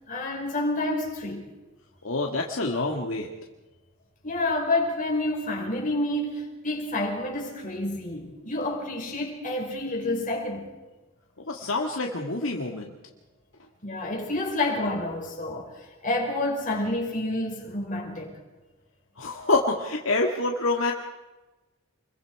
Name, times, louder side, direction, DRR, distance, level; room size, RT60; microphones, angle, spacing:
voice 1, 0.1-1.4 4.2-10.7 13.8-18.4, left 2 dB, 40° left, 5.3 m, -29 dB
voice 2, 2.0-3.3 11.5-12.9 19.2-20.9, left 2 dB, 70° left, 2.0 m, -26 dB
28.5 x 22.5 x 4.9 m
head